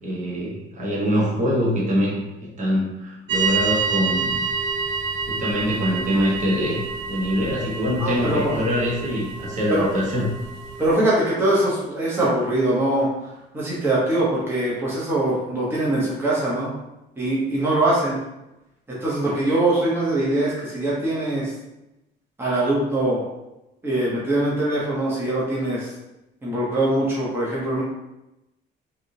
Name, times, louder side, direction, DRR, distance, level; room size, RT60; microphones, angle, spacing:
voice 1, 0.0-2.2 2.6-4.4 5.3-6.8 7.1-10.3, equal, 40° right, -5 dB, 0.9 m, -24 dB
sound 1, 3.3-10.9, right 4 dB, 85° right, 1.2 m, -28 dB
voice 2, 8.0-8.5 9.7-9.9 10.8-13.1 13.5-16.7 17.2-18.2 18.9-21.5 22.4-23.2 23.8-25.9 26.4-27.8, right 1 dB, 10° right, -7 dB, 0.8 m, -22 dB
3.3 x 2.7 x 2.7 m, 0.94 s
cardioid pair, 145°, 19 cm